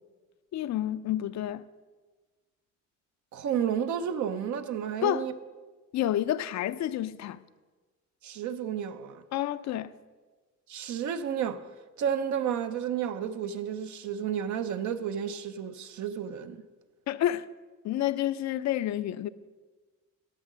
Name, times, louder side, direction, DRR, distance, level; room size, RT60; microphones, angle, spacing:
voice 1, 0.5-1.6 5.0-5.3 5.9-7.4 9.3-9.9 17.1-17.5 17.8-19.3, left 12 dB, 65° left, 0.5 m, -29 dB
voice 2, 3.3-5.3 8.2-9.2 10.7-11.6 12.0-16.6, right 8 dB, 70° right, 0.8 m, -31 dB
11.5 x 7.3 x 6.1 m
cardioid pair, 90°, 30 cm